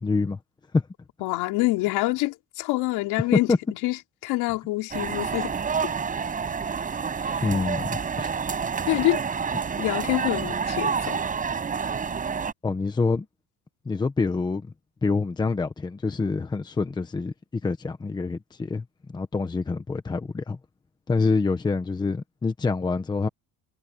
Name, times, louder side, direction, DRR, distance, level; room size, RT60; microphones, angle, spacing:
voice 1, 0.0-0.4 0.7-0.8 3.5-3.6 7.4-8.3 12.6-13.3 13.8-14.7 15.0-17.3 17.6-20.6 21.1-23.3, left 4 dB, 10° left, 1.1 m, -26 dB
voice 2, 1.2-3.5 3.8-4.0 4.2-5.5 7.2-7.4 8.9-9.2 9.8-11.2, left 20 dB, 65° left, 4.1 m, -26 dB
sound 1, 4.9-12.5, right 6 dB, 20° right, 7.3 m, -28 dB
cardioid pair, 175°, 41 cm